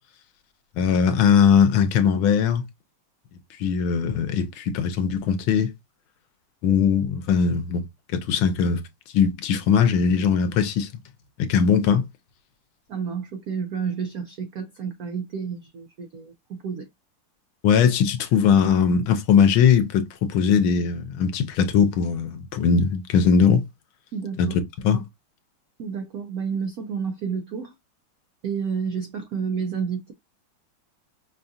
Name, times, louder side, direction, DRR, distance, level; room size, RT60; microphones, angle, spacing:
voice 1, 0.8-2.6 3.6-5.7 6.6-7.8 8.1-8.8 9.1-10.9 11.4-12.0 17.6-23.6 24.4-24.5 24.8-25.0, left 7 dB, 75° left, 1.4 m, -20 dB
voice 2, 12.9-16.9 24.1-24.6 25.8-27.7 28.4-30.1, right 6 dB, 80° right, 0.8 m, -30 dB
5.5 x 2.4 x 2.6 m
omnidirectional pair, 2.4 m